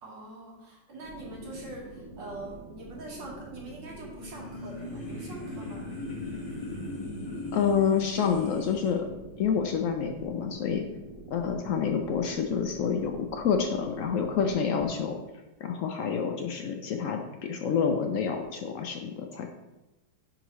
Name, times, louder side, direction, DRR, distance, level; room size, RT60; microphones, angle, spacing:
voice 1, 0.0-5.9, right 1 dB, 80° right, -3 dB, 2.3 m, -43 dB
sound 1, 1.0-14.5, right 2 dB, 50° right, 1.3 m, -46 dB
sound 2, 4.1-8.9, left 2 dB, 35° left, 1.9 m, -39 dB
voice 2, 7.5-9.0 9.4-10.8 11.3-15.2 15.6-17.2 17.5-19.5, left 7 dB, 90° left, 4 dB, 0.7 m, -28 dB
10.0 x 3.9 x 3.0 m, 1.0 s
omnidirectional pair, 2.0 m